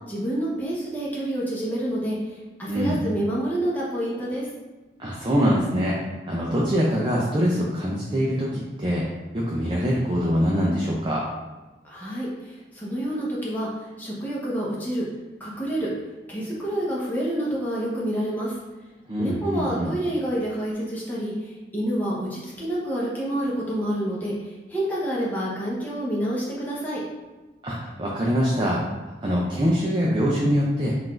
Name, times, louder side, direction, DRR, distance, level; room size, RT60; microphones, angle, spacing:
voice 1, 0.1-2.2 2.6-4.5 11.9-13.7 14.0-15.0 15.4-15.9 16.3-18.5 19.2-21.3 21.7-24.3 24.7-27.0, right 1 dB, 10° left, -7 dB, 0.8 m, -28 dB
voice 2, 2.7-3.0 5.0-6.0 6.3-9.0 9.3-11.2 19.1-20.0 27.6-28.8 29.2-30.9, equal, 25° right, -4 dB, 0.5 m, -24 dB
4.0 x 2.5 x 4.3 m, 1.2 s
head